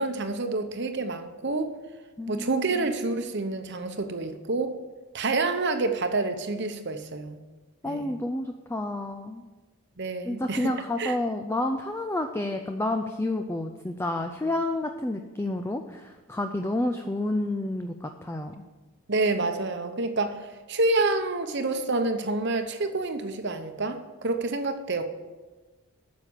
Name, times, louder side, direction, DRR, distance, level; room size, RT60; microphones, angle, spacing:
voice 1, 0.0-1.7 2.3-4.8 5.1-7.4 7.9-8.1 10.0-10.7 11.0-11.2 19.1-20.4 20.7-25.1, right 3 dB, 50° right, 7 dB, 0.9 m, -28 dB
voice 2, 2.2-2.5 7.8-9.4 10.2-18.5, left 1 dB, 10° left, 5 dB, 0.4 m, -30 dB
9.4 x 6.6 x 7.4 m, 1.2 s
head